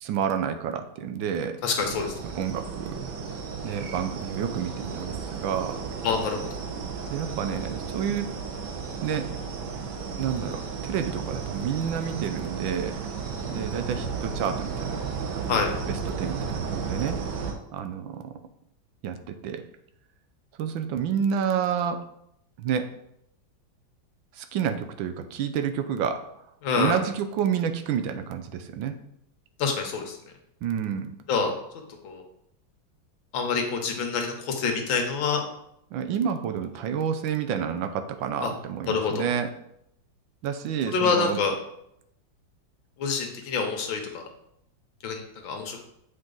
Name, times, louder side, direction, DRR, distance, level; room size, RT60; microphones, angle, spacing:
voice 1, 0.0-1.5 2.3-3.0 3.6-5.8 7.1-8.3 9.0-9.3 10.2-12.9 13.5-15.0 15.3-15.5 16.2-18.4 19.0-19.6 20.6-22.0 22.6-22.9 24.4-26.2 26.7-28.9 30.6-31.2 35.9-39.5 40.4-41.4, right 8 dB, 85° right, 7 dB, 1.4 m, -29 dB
voice 2, 1.6-2.2 6.0-6.4 15.5-15.7 26.6-27.0 29.6-30.2 31.3-31.5 32.0-32.2 33.3-35.4 38.4-38.5 38.9-39.3 40.9-41.5 43.0-44.3 45.0-45.8, left 5 dB, 80° left, 3 dB, 1.7 m, -26 dB
sound 1, 1.8-17.5, right 5 dB, 65° right, 1.4 m, -34 dB
7.9 x 4.1 x 3.8 m, 0.78 s
omnidirectional pair, 2.1 m